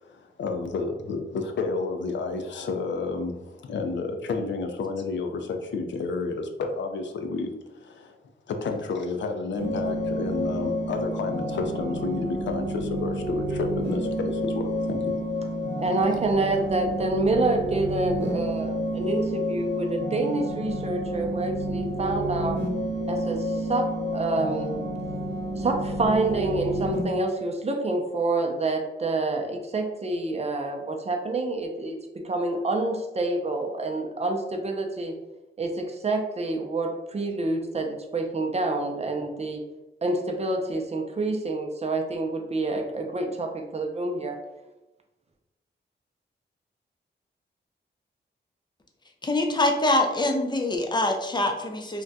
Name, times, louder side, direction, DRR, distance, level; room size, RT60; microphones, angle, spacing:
voice 1, 0.0-8.1 8.5-15.1, left 3 dB, 75° left, 5 dB, 0.4 m, -31 dB
sound 1, 9.6-27.0, equal, 65° right, 0.7 m, -29 dB
voice 2, 15.8-22.6 23.1-24.8 25.6-32.0 32.2-35.1 35.6-39.6 40.0-44.4, right 2 dB, 35° right, 3 dB, 0.5 m, -27 dB
voice 3, 49.2-52.0, left 2 dB, 25° left, 4 dB, 0.5 m, -24 dB
2.4 x 2.2 x 3.9 m, 1.0 s
cardioid pair, 90°, 19 cm